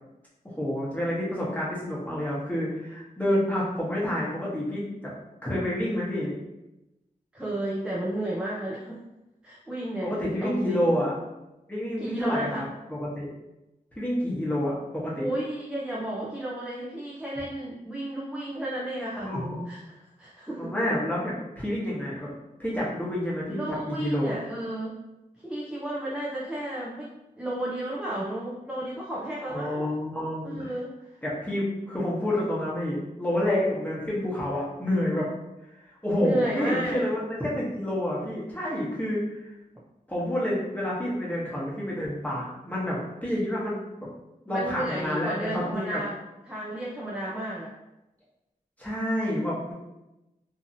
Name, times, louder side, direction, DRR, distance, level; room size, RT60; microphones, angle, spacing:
voice 1, 0.4-5.1 5.4-6.4 10.0-11.1 11.7-12.5 12.9-13.3 14.0-15.3 19.2-19.6 20.6-22.3 22.6-23.6 23.9-24.3 29.4-30.7 31.2-35.3 36.0-39.5 40.1-43.8 44.4-46.0 48.8-49.7, left 1 dB, 10° left, -7 dB, 1.0 m, -28 dB
voice 2, 7.3-9.0 9.4-10.9 12.0-12.6 15.2-19.3 19.7-19.8 20.2-20.7 23.5-25.0 25.4-29.9 30.4-31.2 36.2-37.0 44.5-46.2 46.5-47.7, right 1 dB, 5° right, -5 dB, 0.5 m, -32 dB
2.8 x 2.6 x 2.6 m, 0.95 s
wide cardioid pair, 100°, 15 cm